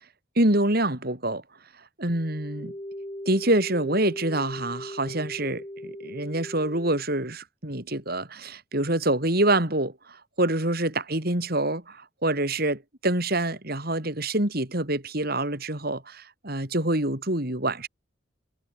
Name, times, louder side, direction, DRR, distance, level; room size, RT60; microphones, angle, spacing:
voice 1, 0.4-1.4 2.0-2.7 3.3-17.9, right 1 dB, 50° right, 4.4 m, -26 dB
sound 1, 2.1-7.0, equal, 20° left, 5.1 m, -39 dB
head